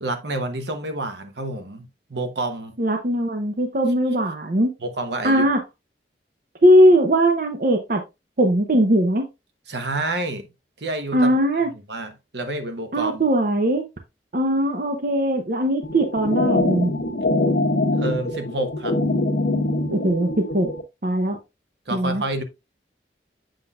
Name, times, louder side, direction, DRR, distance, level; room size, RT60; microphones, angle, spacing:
voice 1, 0.0-2.7 4.8-5.5 9.7-10.5 10.8-11.3 11.7-13.2 17.9-19.0 21.9-22.4, right 2 dB, 75° right, 1.0 m, -29 dB
voice 2, 2.8-4.7 5.2-5.6 6.6-8.0 8.4-9.2 11.1-11.7 12.9-13.8 14.3-16.9 19.9-20.7 21.0-21.4 21.9-22.2, equal, 50° right, 0.7 m, -19 dB
sound 1, 15.8-20.8, left 2 dB, 75° left, 1.1 m, -23 dB
7.7 x 5.7 x 2.3 m
head